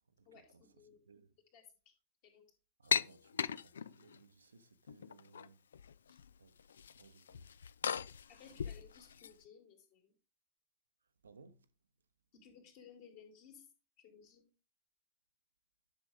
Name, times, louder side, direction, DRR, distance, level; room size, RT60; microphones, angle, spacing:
voice 1, 0.2-1.0 1.5-1.9 2.2-2.5 6.1-6.2 8.3-10.1 12.3-13.7 14.0-14.4, left 7 dB, 50° left, 3.0 m, -59 dB
voice 2, 2.8-5.6 6.4-6.7 6.9-7.5 8.4-8.7 11.2-11.7, right 4 dB, 75° right, 0.7 m, -62 dB
sound 1, 2.9-4.2 4.9-5.5 5.7-6.3 6.6-9.3, left 7 dB, 65° left, 0.3 m, -38 dB
10.5 x 6.1 x 3.5 m
figure-of-eight pair, 90°, 0 cm